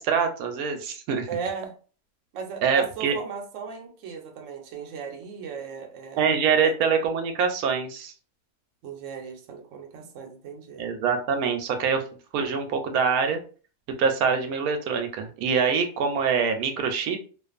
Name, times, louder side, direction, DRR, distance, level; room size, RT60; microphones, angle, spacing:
voice 1, 0.0-1.3 2.6-3.2 6.2-8.1 10.8-12.0 12.3-13.4 14.0-17.2, right 6 dB, 90° right, 6 dB, 1.0 m, -24 dB
voice 2, 1.3-1.7 2.3-6.3 6.6-6.7 8.8-10.8, right 6 dB, 65° right, 2 dB, 0.9 m, -37 dB
2.5 x 2.4 x 2.4 m, 0.39 s
omnidirectional pair, 1.5 m